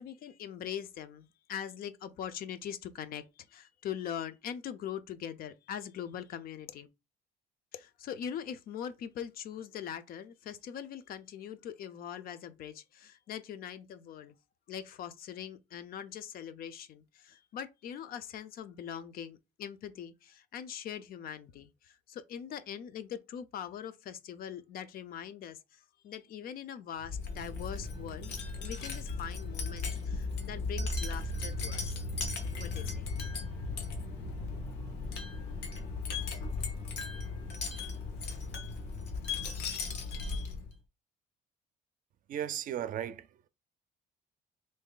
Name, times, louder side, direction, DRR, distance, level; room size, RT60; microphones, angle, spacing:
voice 1, 0.0-6.9 7.7-14.3 14.7-32.0 32.6-33.1, left 9 dB, 60° left, 0.5 m, -42 dB
Wind chime, 27.0-40.7, left 3 dB, 85° left, 1.0 m, -36 dB
voice 2, 42.3-43.5, right 10 dB, 55° right, 0.4 m, -36 dB
3.1 x 2.7 x 3.8 m
cardioid pair, 110°, 17 cm